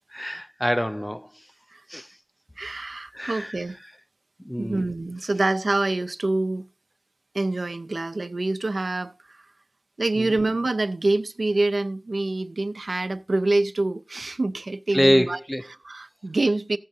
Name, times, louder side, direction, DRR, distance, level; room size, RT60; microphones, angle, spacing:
voice 1, 0.1-1.3 1.9-2.1 3.1-3.6 4.5-4.9 14.9-15.6, equal, 10° left, 0.3 m, -24 dB
voice 2, 2.6-3.8 4.6-6.6 7.3-9.4 10.0-15.4 15.7-16.8, right 2 dB, 75° right, 0.4 m, -26 dB
16.0 x 6.4 x 2.6 m
wide cardioid pair, 40°, 0 cm